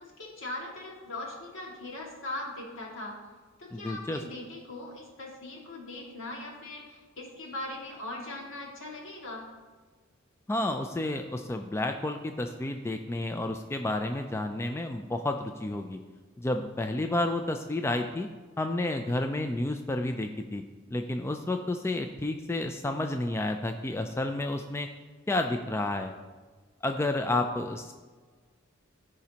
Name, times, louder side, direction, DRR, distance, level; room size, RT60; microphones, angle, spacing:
voice 1, 0.0-3.2 3.6-9.4, left 2 dB, 70° left, -2 dB, 2.0 m, -40 dB
voice 2, 3.7-4.2 10.5-16.0 16.4-18.3 18.6-20.6 20.9-24.9 25.3-26.1 26.8-27.9, left 2 dB, 15° left, 5 dB, 0.3 m, -30 dB
14.5 x 5.0 x 2.8 m, 1.4 s
head